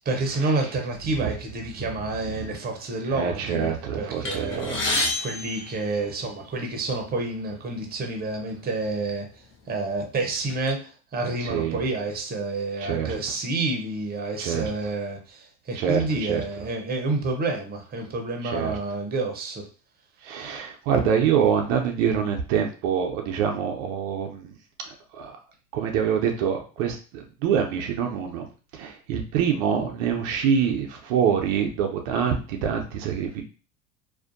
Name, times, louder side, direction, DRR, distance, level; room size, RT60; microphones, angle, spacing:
voice 1, 0.0-3.7 4.0-9.3 9.7-19.6 20.3-20.5, right 3 dB, 25° right, 3 dB, 0.7 m, -29 dB
voice 2, 3.1-5.1 11.4-11.8 12.8-13.1 14.4-14.7 15.8-16.4 18.5-18.8 20.2-24.5 24.9-25.4 25.7-28.5 28.7-33.4, right 7 dB, 75° right, 3 dB, 0.6 m, -25 dB
sound 1, 4.2-6.6 7.4-7.5 7.9-8.0 8.9-9.1 9.5-10.7, left 2 dB, 35° left, 0.7 m, -30 dB
2.5 x 2.2 x 2.5 m, 0.36 s
hypercardioid pair, 90°, 37 cm